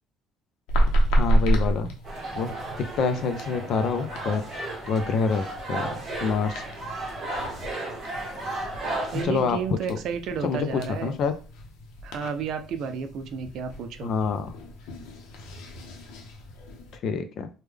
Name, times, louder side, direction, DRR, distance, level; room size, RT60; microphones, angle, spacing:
sound 1, 0.7-17.0, right 1 dB, 85° left, 0.7 m, -31 dB
voice 1, 1.2-1.9 2.3-4.5 4.9-6.6 9.2-9.6 10.4-11.4 14.0-14.5 17.0-17.5, left 5 dB, 50° left, 9 dB, 0.4 m, -27 dB
sound 2, 2.0-9.2, right 2 dB, 30° right, 1.2 m, -34 dB
voice 2, 9.1-11.2 12.0-14.1, right 6 dB, 55° right, 8 dB, 0.4 m, -32 dB
3.4 x 2.2 x 3.3 m, 0.36 s
cardioid pair, 165°, 0 cm